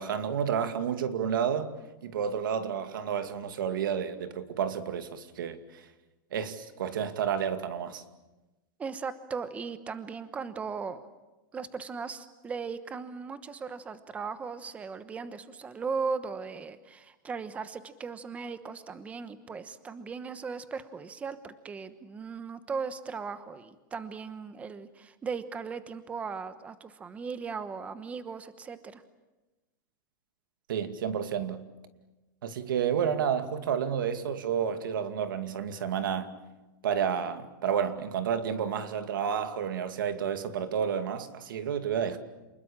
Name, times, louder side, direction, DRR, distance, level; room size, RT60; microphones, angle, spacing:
voice 1, 0.0-1.7 2.0-5.9 6.3-8.0 30.7-31.6 32.4-36.3 36.8-42.2, right 8 dB, 90° right, 2.4 m, -30 dB
voice 2, 8.8-11.1 11.5-29.0, right 5 dB, 10° right, 1.1 m, -37 dB
29.0 x 21.0 x 8.8 m
supercardioid pair, 160°, 11 cm